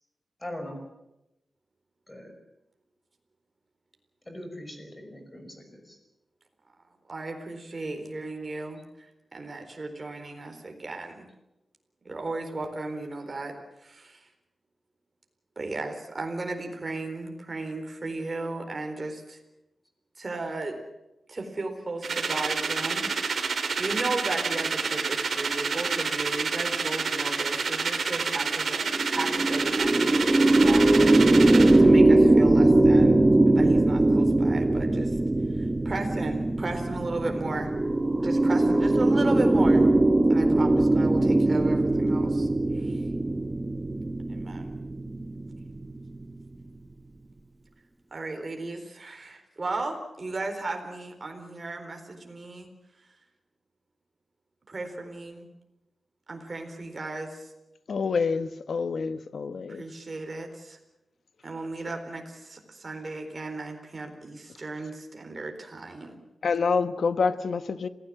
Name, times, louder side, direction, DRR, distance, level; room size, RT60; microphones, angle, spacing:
voice 1, 0.4-0.8 2.1-2.3 4.3-6.0, left 1 dB, 20° left, 5 dB, 5.7 m, -40 dB
voice 2, 7.1-9.1 9.3-11.3 12.0-13.5 13.8-14.3 15.6-19.4 20.2-20.8 21.3-23.1 23.8-28.8 29.1-31.0 31.8-33.2 33.5-35.2 35.6-37.7 38.2-39.9 40.3-42.5 42.7-43.0 44.3-44.7 48.1-52.7 54.7-55.5 56.3-57.5 59.7-60.8 61.4-66.2, right 2 dB, 35° right, 4 dB, 4.1 m, -35 dB
sound 1, 22.0-31.8, right 5 dB, 70° right, 3.1 m, -28 dB
sound 2, 28.8-46.3, right 2 dB, 20° right, 1.0 m, -21 dB
voice 3, 57.9-59.8 66.4-67.9, left 5 dB, 70° left, 11 dB, 1.2 m, -27 dB
27.0 x 17.0 x 7.7 m, 0.93 s
wide cardioid pair, 105°, 0 cm